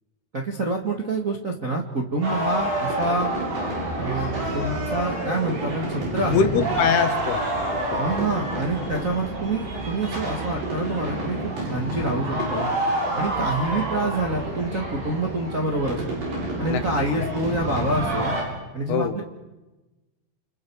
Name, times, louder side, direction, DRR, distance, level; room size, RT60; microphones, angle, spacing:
voice 1, 0.3-3.3 4.0-4.3 4.5-6.5 8.0-11.4 11.7-12.7 13.1-16.2 16.6-18.3 18.7-19.2, right 2 dB, 40° right, -1 dB, 1.1 m, -27 dB
sound 1, 2.2-18.4, right 1 dB, 70° right, 9.9 m, -28 dB
voice 2, 6.3-8.3 16.7-16.8 17.2-17.3 18.9-19.2, left 6 dB, 70° left, 7 dB, 3.4 m, -24 dB
30.0 x 30.0 x 4.8 m, 1.1 s
omnidirectional pair, 4.9 m